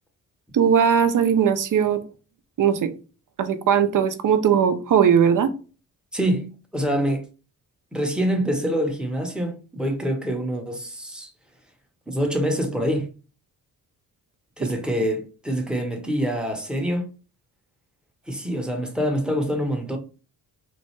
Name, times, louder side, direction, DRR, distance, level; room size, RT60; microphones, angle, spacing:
voice 1, 0.5-2.0 2.6-2.9 3.4-5.5, right 8 dB, 45° right, 0.6 m, -19 dB
voice 2, 6.1-7.2 7.9-11.3 12.1-13.1 14.6-17.1 18.3-20.0, equal, ahead, 0.8 m, -25 dB
3.1 x 2.1 x 3.0 m
hypercardioid pair, 45°, 45 cm